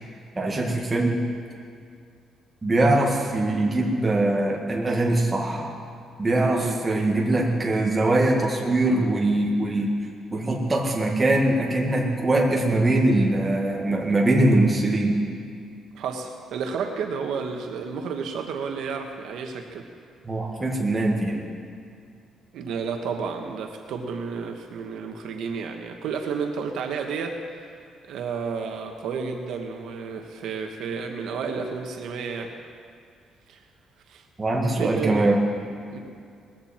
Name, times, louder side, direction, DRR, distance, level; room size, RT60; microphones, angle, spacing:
voice 1, 0.4-1.2 2.6-5.7 6.2-9.9 10.3-15.2 20.2-21.4 34.4-35.4, right 2 dB, 15° right, -1 dB, 1.9 m, -22 dB
voice 2, 6.5-6.8 15.9-19.9 22.5-27.4 28.1-32.5 33.5-33.6 34.1-34.2 34.8-35.2 35.9-36.0, right 5 dB, 70° right, 3 dB, 1.3 m, -31 dB
19.5 x 14.5 x 4.4 m, 2.3 s
cardioid pair, 175°, 0 cm